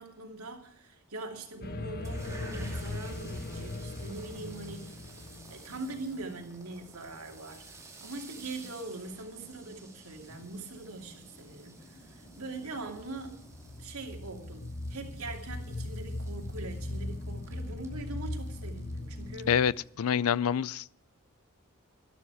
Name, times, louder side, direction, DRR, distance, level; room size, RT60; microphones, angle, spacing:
voice 1, 0.0-5.1 5.5-13.4 13.8-19.6, right 2 dB, 85° right, 2.6 m, -42 dB
sound 1, 1.6-6.6 12.6-19.7, left 2 dB, 45° left, 1.0 m, -39 dB
sound 2, 2.0-19.9, right 3 dB, 15° right, 2.5 m, -54 dB
sound 3, 3.3-13.9, equal, ahead, 4.9 m, -57 dB
voice 2, 19.5-20.9, left 8 dB, 70° left, 0.4 m, -27 dB
13.0 x 12.5 x 4.8 m
head